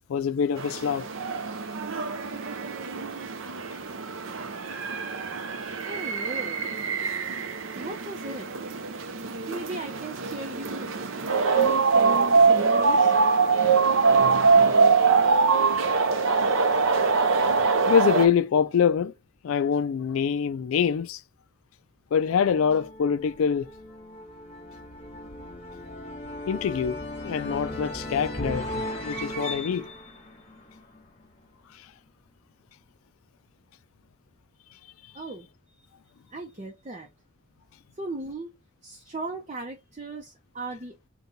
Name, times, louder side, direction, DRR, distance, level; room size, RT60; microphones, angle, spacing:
voice 1, 0.1-1.1 17.9-19.1 19.4-21.2 22.1-23.7 26.5-27.0 27.2-29.9, left 7 dB, 80° left, 0.4 m, -24 dB
sound 1, 0.6-18.3, right 4 dB, 70° right, 0.6 m, -23 dB
voice 2, 5.9-6.6 7.7-8.5 9.5-10.9 11.5-13.2 35.1-35.5 36.3-37.1 38.0-38.5 38.8-41.1, right 2 dB, 30° right, 0.6 m, -37 dB
sound 2, 22.2-31.3, left 1 dB, 30° left, 1.2 m, -37 dB
5.4 x 2.3 x 3.9 m
head